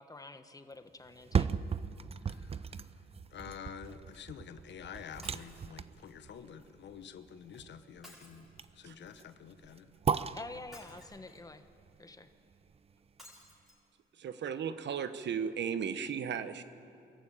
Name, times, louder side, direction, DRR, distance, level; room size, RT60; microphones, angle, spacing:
voice 1, 0.0-1.6 10.3-11.6 12.0-12.3, left 2 dB, 20° left, 9 dB, 1.3 m, -48 dB
sound 1, 1.0-13.1 13.5-13.6, right 6 dB, 30° right, 0.6 m, -38 dB
voice 2, 2.2-9.9, left 8 dB, 65° left, 11 dB, 1.0 m, -49 dB
Shatter, 5.2-5.7 8.0-8.9 10.7-11.5 13.2-13.8 14.4-14.5 14.8-14.9, left 1 dB, ahead, 6.3 m, -55 dB
voice 3, 14.1-16.6, right 7 dB, 65° right, 11 dB, 1.1 m, -35 dB
24.0 x 14.5 x 8.8 m, 2.5 s
cardioid pair, 90°, 20 cm